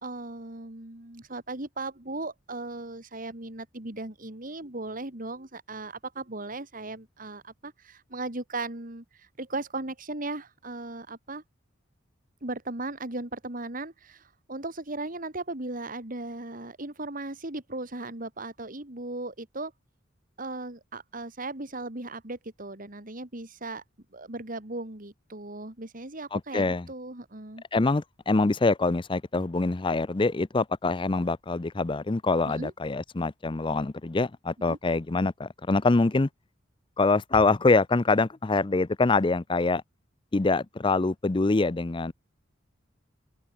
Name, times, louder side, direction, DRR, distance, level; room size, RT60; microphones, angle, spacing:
voice 1, 0.0-11.4 12.4-19.7 20.4-23.8 24.1-27.6 32.5-32.7 34.7-34.8, right 2 dB, 45° right, 2.8 m, -37 dB
voice 2, 26.3-26.8 27.7-36.3 37.0-39.8 40.3-42.1, left 3 dB, 25° left, 0.5 m, -25 dB
head